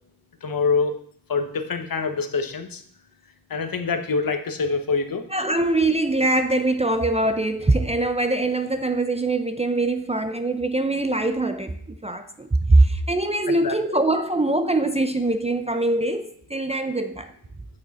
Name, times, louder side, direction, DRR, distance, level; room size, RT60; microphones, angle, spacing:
voice 1, 0.4-1.0 1.3-2.8 3.5-5.2 13.6-13.8, left 4 dB, 55° left, 1.0 m, -25 dB
voice 2, 5.3-17.3, right 2 dB, 15° right, 0.5 m, -22 dB
8.8 x 6.4 x 4.2 m
wide cardioid pair, 100°, 40 cm